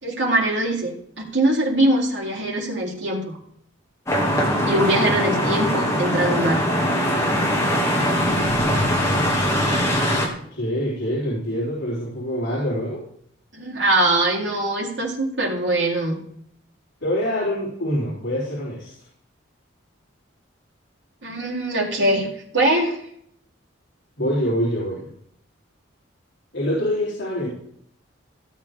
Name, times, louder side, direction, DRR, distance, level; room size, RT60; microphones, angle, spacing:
voice 1, 0.0-3.3 4.7-6.6 13.5-16.2 21.2-22.3 22.5-23.0, right 1 dB, 65° right, -4 dB, 3.8 m, -22 dB
sound 1, 4.1-10.3, equal, 15° left, 2.5 m, -21 dB
voice 2, 10.5-13.0 17.0-18.9 24.2-25.1 26.5-27.5, equal, 65° left, -7 dB, 4.0 m, -25 dB
16.5 x 8.4 x 3.7 m, 0.66 s
head